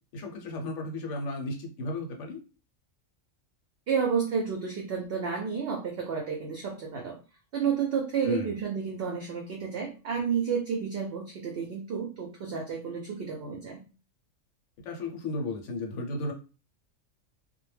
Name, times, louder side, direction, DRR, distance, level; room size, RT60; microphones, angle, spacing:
voice 1, 0.0-2.4 8.2-8.5 14.8-16.3, left 2 dB, 70° left, 2 dB, 0.9 m, -34 dB
voice 2, 3.9-7.2 7.5-13.8, right 6 dB, 65° right, 1 dB, 0.6 m, -31 dB
2.2 x 2.1 x 3.1 m, 0.34 s
omnidirectional pair, 1.3 m